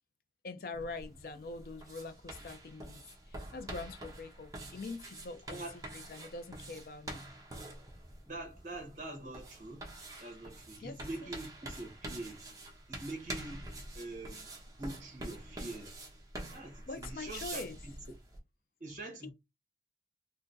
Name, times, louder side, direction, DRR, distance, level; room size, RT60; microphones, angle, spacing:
voice 1, 0.4-3.0 3.3-5.6 5.9-7.2 10.8-11.3 16.9-17.8 19.2-19.3, left 3 dB, 50° left, 0.4 m, -44 dB
sound 1, 0.7-18.4, right 1 dB, 20° right, 0.7 m, -47 dB
voice 2, 8.2-9.9 10.2-12.5 12.9-13.7 13.9-14.5 14.8-16.0 16.5-17.6 18.8-19.3, right 2 dB, 45° right, 1.1 m, -44 dB
4.3 x 2.1 x 2.6 m
head